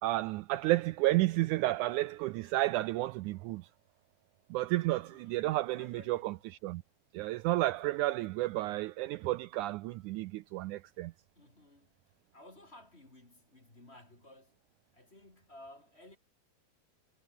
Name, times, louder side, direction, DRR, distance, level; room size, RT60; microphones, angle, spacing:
voice 1, 0.0-3.7 4.5-6.3 6.6-6.8 7.1-11.1, right 17 dB, 85° right, 1.8 m, -31 dB
voice 2, 4.9-6.4 7.8-8.0 11.3-12.0 12.3-14.6 14.9-16.2, left 1 dB, 20° left, 2.9 m, -56 dB
omnidirectional pair, 4.0 m